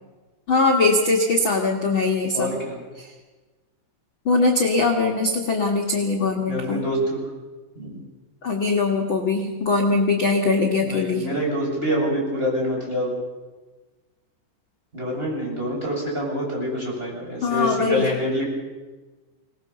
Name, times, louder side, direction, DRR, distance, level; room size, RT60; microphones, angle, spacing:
voice 1, 0.5-2.5 3.0-3.1 4.2-6.8 8.4-11.2 17.4-18.1, left 3 dB, 60° left, 1 dB, 1.3 m, -21 dB
voice 2, 2.3-2.8 6.5-7.3 7.8-8.0 10.8-13.1 14.9-18.5, equal, 10° right, -3 dB, 7.9 m, -26 dB
25.0 x 19.5 x 7.0 m, 1.2 s
omnidirectional pair, 5.5 m